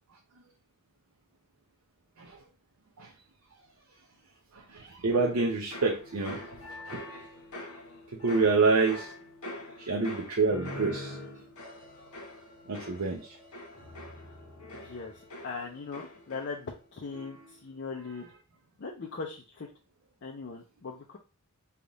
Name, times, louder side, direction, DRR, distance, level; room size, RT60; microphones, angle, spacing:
voice 1, 4.5-6.5 6.8-7.0 8.1-9.1 9.8-11.2 12.7-13.4, right 4 dB, 70° right, 0 dB, 0.6 m, -27 dB
sound 1, 5.2-16.8 17.1-17.6, left 1 dB, 75° left, 1.0 m, -44 dB
voice 2, 14.7-15.1 15.4-18.2 18.8-19.7 20.2-21.2, left 4 dB, 50° left, 0 dB, 0.5 m, -39 dB
3.4 x 2.4 x 3.8 m, 0.33 s
head